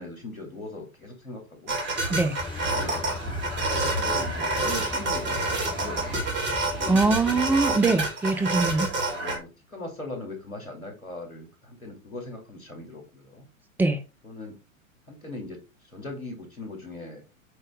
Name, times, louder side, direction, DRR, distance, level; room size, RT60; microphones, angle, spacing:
voice 1, 0.0-1.8 2.7-3.0 3.6-6.3 6.7-7.5 9.1-13.5 14.2-14.6 15.1-15.6 15.8-17.2, left 2 dB, 85° left, 2.6 m, -39 dB
sound 1, 1.7-9.4, right 2 dB, 25° right, 2.6 m, -28 dB
sound 2, 2.4-7.8, left 3 dB, 10° left, 1.2 m, -37 dB
voice 2, 6.9-8.9 13.8-14.0, right 3 dB, 5° right, 0.6 m, -22 dB
7.9 x 4.0 x 3.4 m
figure-of-eight pair, 100°, 41 cm